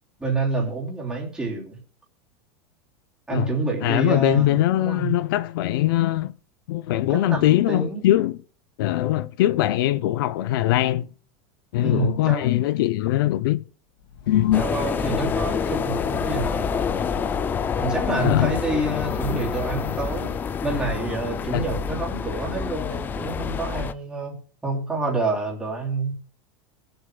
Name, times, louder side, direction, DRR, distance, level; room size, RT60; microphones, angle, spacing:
voice 1, 0.2-1.8 3.3-5.1 7.1-8.0 11.8-12.5 14.6-16.7 17.8-20.3 20.6-26.1, right 2 dB, 5° right, 3.1 m, -27 dB
voice 2, 3.8-6.3 6.7-8.4 8.8-11.1 11.7-13.6 14.3-14.7 18.2-18.6 21.5-21.7, left 14 dB, 70° left, 0.5 m, -21 dB
Train, 14.0-19.7, left 6 dB, 85° left, 2.2 m, -39 dB
sound 1, 14.5-23.9, left 6 dB, 15° left, 0.4 m, -27 dB
22.0 x 8.0 x 2.3 m
supercardioid pair, 165°, 12 cm